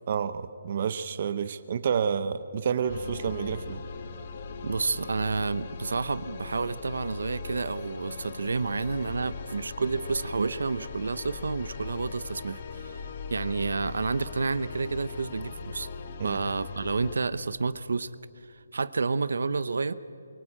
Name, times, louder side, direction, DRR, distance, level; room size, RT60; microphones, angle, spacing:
voice 1, 0.1-3.8 16.2-16.4, right 7 dB, 35° right, 13 dB, 0.8 m, -29 dB
sound 1, 2.9-17.1, left 5 dB, 35° left, 1.6 m, -40 dB
voice 2, 4.6-15.9 16.2-18.1 18.5-19.9, right 4 dB, 75° right, 16 dB, 0.9 m, -30 dB
23.5 x 23.5 x 8.8 m, 2.6 s
hypercardioid pair, 170°, 0 cm